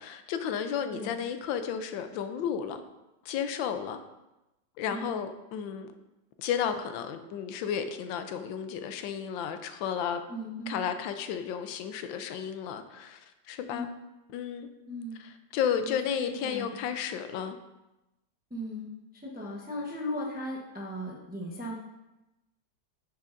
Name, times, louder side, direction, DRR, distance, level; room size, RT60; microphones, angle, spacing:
voice 1, 0.0-2.8 3.2-4.0 4.8-5.9 6.4-10.2 10.7-13.9 14.3-14.7 15.2-17.6, left 8 dB, 85° left, 9 dB, 1.3 m, -33 dB
voice 2, 10.3-10.8 13.7-14.0 14.9-15.2 15.8-16.7 18.5-18.9 19.1-21.7, left 1 dB, 10° right, -3 dB, 0.4 m, -37 dB
8.2 x 6.0 x 2.5 m, 0.98 s
omnidirectional pair, 2.0 m